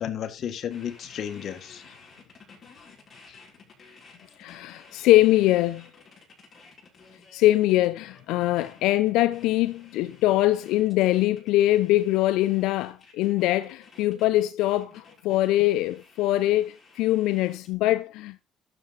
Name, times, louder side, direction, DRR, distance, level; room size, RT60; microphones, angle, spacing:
voice 1, 0.0-1.9 3.3-3.4, left 9 dB, 55° left, 1.6 m, -33 dB
sound 1, 0.7-17.7, left 4 dB, 30° left, 6.1 m, -53 dB
voice 2, 4.4-5.8 7.3-18.4, left 15 dB, 90° left, 0.6 m, -23 dB
12.0 x 7.7 x 4.1 m
cardioid pair, 115°, 0 cm